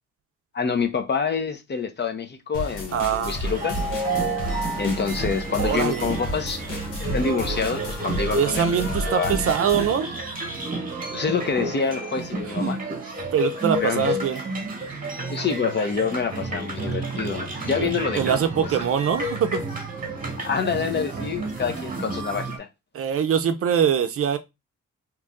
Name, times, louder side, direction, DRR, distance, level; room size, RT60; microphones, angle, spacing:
voice 1, 0.5-3.8 4.8-6.6 7.0-8.8 9.0-9.3 11.1-12.8 13.8-14.1 15.3-18.7 20.4-22.7, left 5 dB, 35° left, 0.7 m, -27 dB
sound 1, 2.5-9.9, equal, 85° left, 1.2 m, -32 dB
voice 2, 2.9-3.4 5.6-6.1 8.4-10.1 12.6-12.7 13.3-14.4 17.8-17.9 18.2-19.6 22.9-24.4, right 8 dB, 50° right, 0.5 m, -23 dB
sound 2, 3.4-22.6, right 2 dB, 25° right, 1.1 m, -30 dB
3.0 x 2.6 x 3.4 m
cardioid pair, 90°, 30 cm